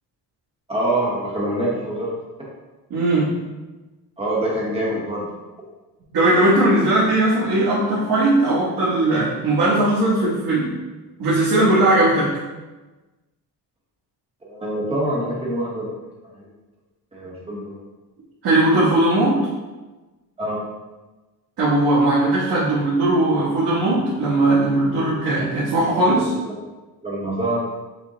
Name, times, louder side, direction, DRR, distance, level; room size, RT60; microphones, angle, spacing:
voice 1, 0.7-2.1 2.4-2.5 4.2-5.3 14.4-16.0 16.4-16.5 17.1-17.8 20.4-20.6 25.9-26.0 26.5-26.6 27.0-27.7, right 1 dB, 15° right, -5 dB, 0.9 m, -25 dB
voice 2, 2.9-3.3 6.1-10.7 11.2-12.3 18.4-19.4 21.6-26.3, right 2 dB, 65° right, -12 dB, 1.3 m, -18 dB
4.9 x 2.2 x 3.9 m, 1.2 s
cardioid pair, 170°, 38 cm